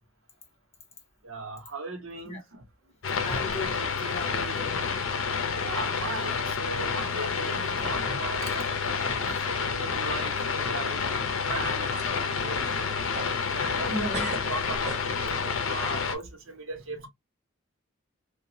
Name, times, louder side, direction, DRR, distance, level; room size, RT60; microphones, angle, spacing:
voice 1, 1.2-2.6 3.3-3.4 5.6-11.2 11.5-12.9 13.5-17.1, right 3 dB, 80° right, 0.9 m, -38 dB
sound 1, 3.0-16.2, left 5 dB, 80° left, 0.6 m, -29 dB
voice 2, 3.2-4.9 5.6-5.7 9.3-9.4 13.9-14.3, left 1 dB, 35° left, 1.0 m, -36 dB
sound 2, 3.5-4.4 4.6-5.1 5.6-5.7 6.5-6.6 7.4-7.5 7.9-8.3 8.6-8.7 11.2-11.3 11.6-12.1 12.6-13.9 14.1-15.4, right 1 dB, 35° right, 1.2 m, -40 dB
2.8 x 2.3 x 2.7 m
head